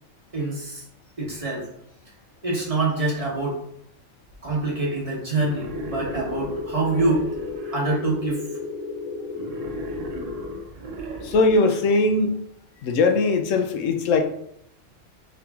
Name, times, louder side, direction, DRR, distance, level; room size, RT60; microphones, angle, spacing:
voice 1, 0.3-0.8 1.2-1.7 2.4-3.6 4.4-7.3 7.7-8.5, right 2 dB, 30° right, -4 dB, 1.0 m, -25 dB
Wild animals, 5.3-7.8 9.3-11.8, right 2 dB, 80° right, 1.1 m, -37 dB
sound 1, 5.6-10.6, left 4 dB, 25° left, 0.5 m, -33 dB
voice 2, 11.2-12.4 12.8-14.2, left 3 dB, 90° left, 5 dB, 1.0 m, -20 dB
3.7 x 2.9 x 3.5 m, 0.70 s
omnidirectional pair, 1.3 m